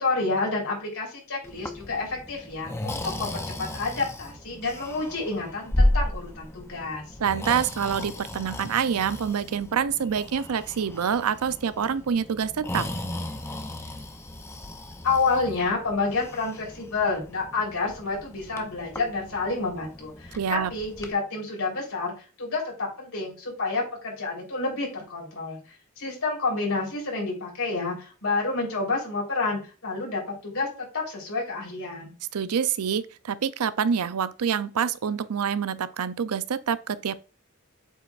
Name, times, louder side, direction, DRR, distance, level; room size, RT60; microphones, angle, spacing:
voice 1, 0.0-7.0 15.0-25.6 26.0-32.1, left 3 dB, 70° left, 3.7 m, -29 dB
Breathing, 1.4-21.1, left 1 dB, 10° left, 0.6 m, -34 dB
voice 2, 7.2-12.9 20.4-20.7 32.3-37.2, right 7 dB, 90° right, 0.5 m, -26 dB
7.7 x 5.0 x 2.4 m
head